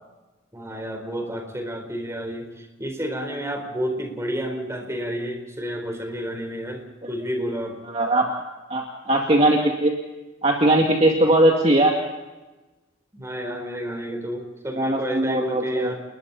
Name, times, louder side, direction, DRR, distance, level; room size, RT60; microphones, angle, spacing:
voice 1, 0.5-7.8 13.1-16.0, equal, 15° right, 4 dB, 4.2 m, -30 dB
voice 2, 7.9-8.3 8.7-9.9 10.4-11.9 14.8-15.9, right 1 dB, 30° right, 0 dB, 2.3 m, -19 dB
30.0 x 21.0 x 4.2 m, 1.1 s
head